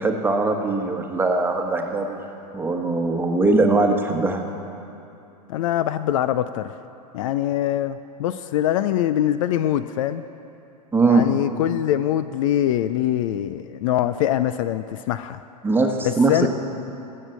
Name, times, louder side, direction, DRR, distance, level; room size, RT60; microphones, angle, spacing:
voice 1, 0.0-2.2 2.5-4.4 10.9-11.2 15.6-16.5, right 3 dB, 10° right, 3 dB, 1.3 m, -20 dB
voice 2, 5.5-6.7 7.1-10.2 11.1-15.4 16.0-16.5, left 12 dB, 55° left, 13 dB, 0.4 m, -23 dB
15.0 x 6.5 x 7.4 m, 2.8 s
hypercardioid pair, 100°, 21 cm